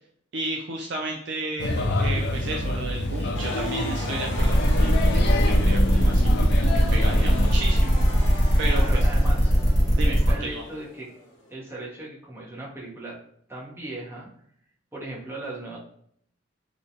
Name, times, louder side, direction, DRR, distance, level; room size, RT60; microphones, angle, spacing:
voice 1, 0.3-8.0 8.6-8.8 10.0-10.1 10.5-10.6, right 2 dB, 60° right, 0 dB, 0.4 m, -33 dB
Male speech man speaking / Child speech kid speaking / Chatter, 1.6-7.5, left 2 dB, 55° left, 0.3 m, -27 dB
sound 1, 3.3-11.5, left 1 dB, 70° left, 0.8 m, -39 dB
sound 2, 4.4-10.3, equal, 40° left, 1.3 m, -21 dB
voice 2, 8.6-9.5 10.0-11.1 11.5-13.1 13.5-14.3 14.9-15.8, right 2 dB, 15° right, -5 dB, 0.7 m, -37 dB
2.5 x 2.1 x 2.8 m, 0.66 s
head